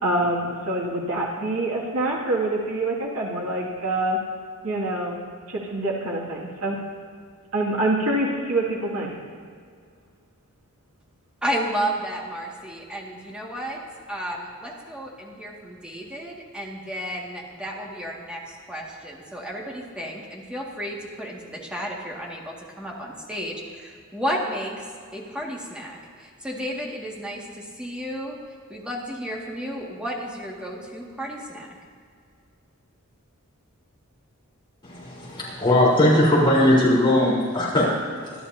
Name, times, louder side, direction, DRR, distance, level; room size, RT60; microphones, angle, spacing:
voice 1, 0.0-4.2 4.6-5.2 5.5-6.8 7.5-9.1, right 1 dB, 85° right, -3 dB, 2.3 m, -25 dB
voice 2, 11.4-13.8 14.1-24.9 25.1-28.4 28.7-31.7, equal, 5° right, -3 dB, 2.0 m, -32 dB
voice 3, 34.8-38.3, left 1 dB, 25° left, -6 dB, 3.9 m, -19 dB
25.0 x 11.5 x 2.8 m, 2.2 s
head